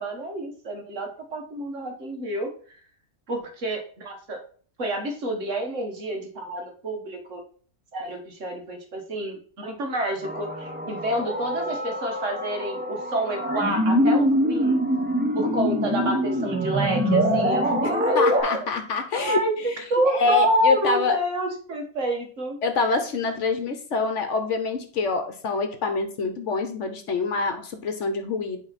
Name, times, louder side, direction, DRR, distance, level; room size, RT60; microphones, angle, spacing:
voice 1, 0.0-2.5 3.3-4.4 4.8-7.4 7.9-14.8 15.4-18.6 19.1-22.6, right 1 dB, 60° right, 3 dB, 1.6 m, -28 dB
sound 1, 10.2-18.4, equal, 10° right, 0.7 m, -24 dB
voice 2, 18.1-19.4 20.2-21.2 22.6-28.6, left 4 dB, 60° left, 7 dB, 1.1 m, -25 dB
8.6 x 3.5 x 4.1 m, 0.43 s
omnidirectional pair, 1.5 m